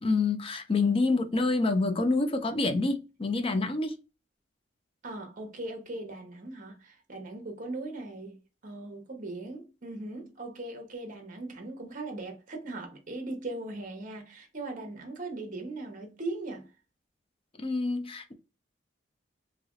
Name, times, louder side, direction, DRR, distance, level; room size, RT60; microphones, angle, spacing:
voice 1, 0.0-3.9 17.6-18.3, left 3 dB, 30° left, 0.5 m, -27 dB
voice 2, 5.0-16.7, right 2 dB, 45° right, 0.9 m, -39 dB
3.1 x 2.9 x 2.4 m
head